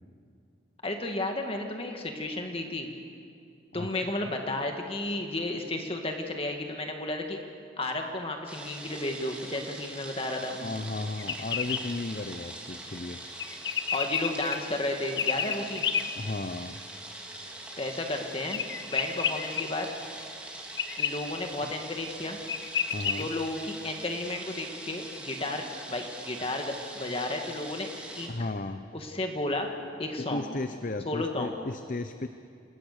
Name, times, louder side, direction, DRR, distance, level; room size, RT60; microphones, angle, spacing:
voice 1, 0.8-2.9 3.7-7.4 7.8-10.6 13.9-15.9 17.8-19.9 21.0-22.4 23.2-27.9 28.2-28.3 28.9-29.7 30.0-30.5 31.1-31.5, left 2 dB, 30° left, 3 dB, 1.8 m, -33 dB
voice 2, 3.7-4.1 4.5-4.6 10.6-13.2 16.1-16.8 21.6-21.7 22.9-23.3 28.3-28.9 30.2-32.3, left 2 dB, 45° left, 9 dB, 0.7 m, -35 dB
sound 1, 8.5-28.3, right 1 dB, 5° right, 3.2 m, -43 dB
sound 2, 11.2-11.8 13.4-14.6 15.2-16.0 18.5-19.6 20.8-21.1 22.1-22.2 22.5-23.2, left 7 dB, 75° left, 1.4 m, -30 dB
28.5 x 20.5 x 6.6 m, 2.4 s
head